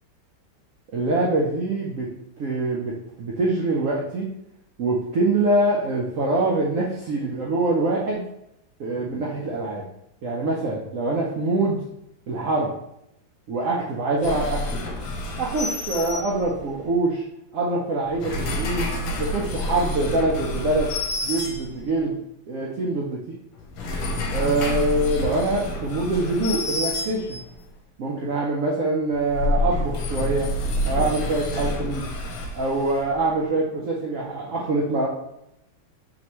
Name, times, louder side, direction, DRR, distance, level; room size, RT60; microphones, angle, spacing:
voice 1, 0.9-2.1 2.4-4.3 4.8-8.2 8.8-9.9 10.2-11.8 12.3-12.7 13.5-14.8 15.4-17.2 17.5-18.9 19.2-20.9 21.2-22.2 22.5-23.4 24.3-27.4 28.0-30.5 30.8-32.0 32.5-35.1, right 2 dB, 80° right, -4 dB, 0.7 m, -24 dB
sound 1, 14.2-16.8 18.0-22.1 23.6-27.6 29.1-33.3, left 1 dB, 80° left, 1.4 m, -28 dB
4.2 x 3.2 x 3.0 m, 0.80 s
omnidirectional pair, 2.1 m